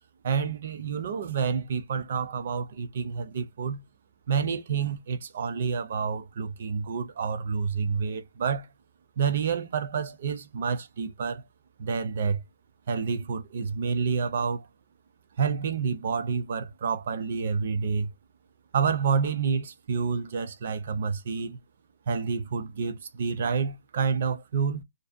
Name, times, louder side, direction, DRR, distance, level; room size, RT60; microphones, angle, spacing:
voice 1, 0.2-3.8 4.3-8.7 9.2-11.4 11.8-12.4 12.9-14.7 15.4-18.1 18.7-21.6 22.1-24.8, right 6 dB, 30° right, 0.3 m, -28 dB
2.6 x 2.1 x 2.4 m
hypercardioid pair, 180°, 0 cm